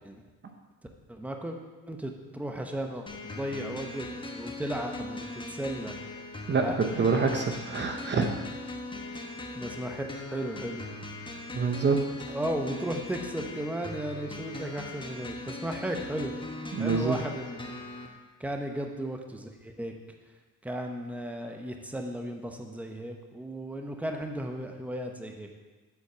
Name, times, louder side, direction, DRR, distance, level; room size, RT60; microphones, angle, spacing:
voice 1, 1.1-1.6 1.9-6.0 6.6-7.1 9.5-10.9 12.3-16.3 16.8-17.7 18.4-20.0 20.6-25.5, right 1 dB, 5° right, 3 dB, 0.9 m, -35 dB
sound 1, 3.1-18.1, left 2 dB, 15° left, 1.2 m, -40 dB
voice 2, 6.5-8.3 11.5-12.1 16.7-17.2, right 4 dB, 35° right, 3 dB, 0.8 m, -26 dB
8.1 x 4.1 x 7.0 m, 1.3 s
cardioid pair, 90°, 30 cm